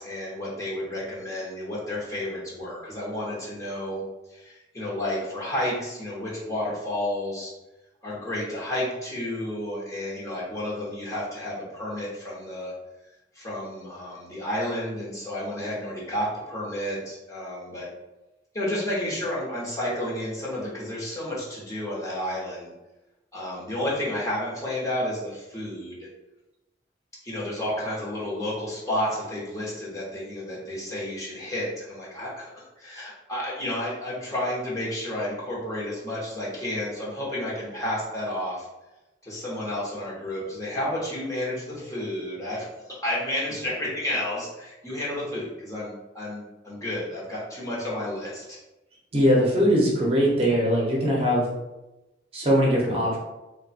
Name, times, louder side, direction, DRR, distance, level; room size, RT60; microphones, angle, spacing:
voice 1, 0.0-4.0 4.3-7.5 8.0-12.7 13.3-17.9 18.5-22.7 23.3-26.1 27.2-32.5 32.8-38.7 39.2-48.6, left 1 dB, 20° left, -6 dB, 1.0 m, -31 dB
voice 2, 49.1-51.4 52.3-53.2, equal, 35° right, -4 dB, 0.9 m, -21 dB
3.5 x 2.3 x 4.1 m, 1.0 s
head